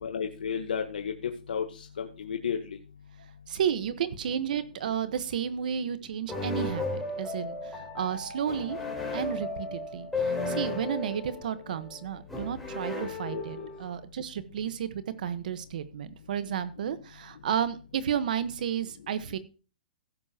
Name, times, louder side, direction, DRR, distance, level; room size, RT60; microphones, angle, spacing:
voice 1, 0.0-1.1 1.5-2.6 13.3-13.7, left 7 dB, 80° left, 4 dB, 1.2 m, -32 dB
voice 2, 3.5-8.8 9.1-19.4, right 8 dB, 60° right, 13 dB, 1.2 m, -32 dB
sound 1, 6.3-14.0, left 2 dB, 5° left, 3.7 m, -35 dB
16.0 x 7.1 x 2.9 m, 0.34 s
hypercardioid pair, 150°, 5 cm